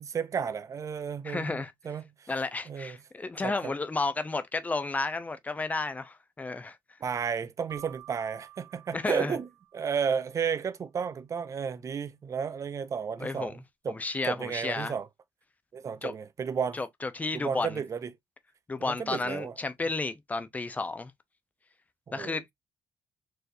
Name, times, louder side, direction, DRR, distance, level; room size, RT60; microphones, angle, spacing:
voice 1, 0.0-2.3 2.7-3.0 3.4-3.7 7.0-9.5 9.7-13.6 13.8-14.0 14.2-15.1 15.7-16.8 17.3-18.1 18.8-19.5 22.1-22.4, right 6 dB, 40° right, 0.6 m, -33 dB
voice 2, 1.2-1.7 2.3-6.8 8.9-9.4 13.2-13.6 13.9-14.9 16.0-16.1 16.7-17.8 18.7-21.1 22.1-22.4, left 3 dB, 20° left, 0.6 m, -32 dB
Keyboard (musical), 7.7-10.2, right 14 dB, 80° right, 1.8 m, -51 dB
4.6 x 3.1 x 2.5 m
cardioid pair, 115°, 8 cm